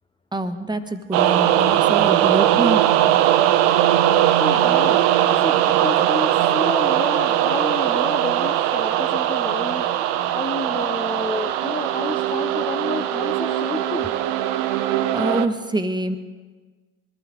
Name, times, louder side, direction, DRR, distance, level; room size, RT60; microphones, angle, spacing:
voice 1, 0.3-2.8 15.1-16.2, right 1 dB, 10° right, 8 dB, 1.5 m, -25 dB
sound 1, 1.1-15.5, right 12 dB, 65° right, 1.0 m, -20 dB
voice 2, 4.3-5.0 5.3-14.1, left 4 dB, 15° left, 6 dB, 0.7 m, -30 dB
23.5 x 15.0 x 3.9 m, 1.4 s
hypercardioid pair, 60°, 37 cm